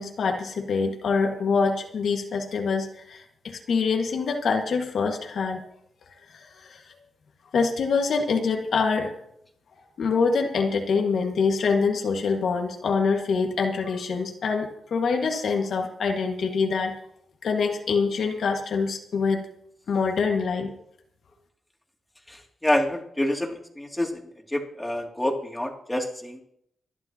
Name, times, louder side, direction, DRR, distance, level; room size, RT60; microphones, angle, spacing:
voice 1, 0.0-5.6 6.3-6.8 7.5-9.1 10.0-17.0 17.4-19.4 19.9-20.7, left 5 dB, 75° left, 2 dB, 2.0 m, -25 dB
voice 2, 22.3-24.2 24.5-26.4, left 1 dB, 10° left, 0 dB, 2.9 m, -27 dB
25.0 x 11.5 x 3.0 m, 0.73 s
cardioid pair, 85°, 0 cm